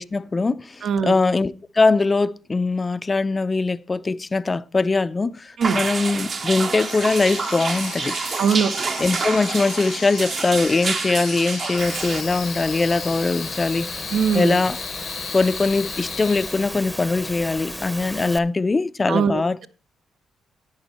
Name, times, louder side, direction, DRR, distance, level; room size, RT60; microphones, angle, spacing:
voice 1, 0.0-8.2 9.0-13.9 14.3-14.8 15.3-19.7, left 3 dB, 25° left, 0.5 m, -21 dB
voice 2, 0.8-1.1 5.6-5.8 8.4-8.7 14.1-14.6 19.1-19.7, right 6 dB, 65° right, 1.0 m, -21 dB
sound 1, 5.6-12.2, right 4 dB, 45° right, 1.1 m, -28 dB
sound 2, 6.8-17.0, left 10 dB, 70° left, 0.5 m, -36 dB
Engine / Mechanisms, 11.8-18.4, left 1 dB, 5° left, 0.8 m, -34 dB
11.5 x 9.2 x 4.2 m
cardioid pair, 90°, 0 cm